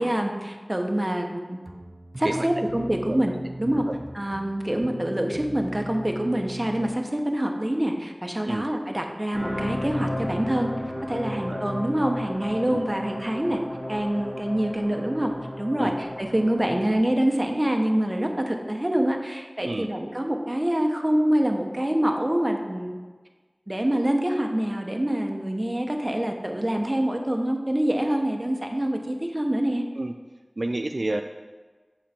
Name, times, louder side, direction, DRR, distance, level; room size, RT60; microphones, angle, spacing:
voice 1, 0.0-1.6 2.2-3.3 3.6-3.9 4.1-10.7 11.0-13.6 13.9-23.0 23.7-29.8, right 1 dB, 30° right, 3 dB, 1.0 m, -25 dB
sound 1, 1.6-7.0, right 1 dB, 50° right, 0.8 m, -39 dB
sound 2, 9.3-16.9, left 1 dB, 80° left, 2.2 m, -34 dB
voice 2, 30.6-31.2, right 2 dB, 70° right, 5 dB, 0.4 m, -30 dB
7.4 x 7.0 x 4.4 m, 1.4 s
wide cardioid pair, 45°, 0 cm